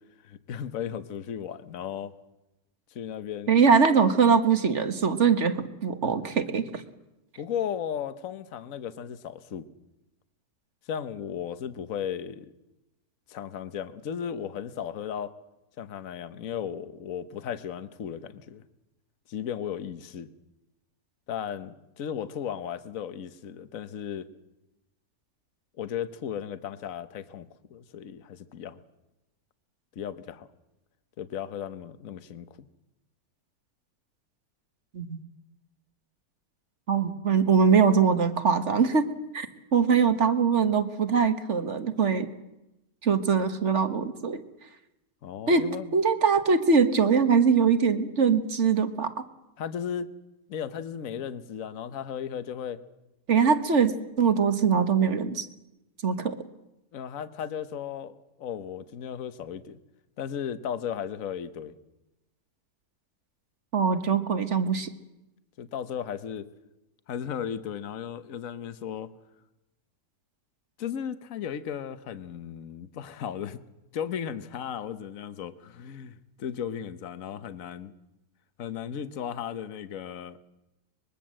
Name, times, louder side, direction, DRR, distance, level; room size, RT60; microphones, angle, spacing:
voice 1, 0.2-2.1 2.9-3.5 7.4-9.7 10.9-12.5 13.3-15.3 15.8-18.6 19.3-20.3 21.3-24.3 25.8-28.8 29.9-30.5 31.2-32.7 45.2-45.9 49.6-50.1 50.5-52.8 56.9-59.8 60.2-61.7 65.6-66.5 67.1-69.1 70.8-73.6 73.9-77.9 78.6-80.4, left 8 dB, 60° left, 13 dB, 1.4 m, -35 dB
voice 2, 3.5-6.8 34.9-35.2 36.9-39.5 39.7-42.3 43.0-44.4 45.5-45.7 45.9-49.2 53.3-55.5 56.0-56.4 63.7-64.9, right 5 dB, 50° right, 10 dB, 1.7 m, -22 dB
24.5 x 21.5 x 7.6 m, 0.95 s
omnidirectional pair, 1.6 m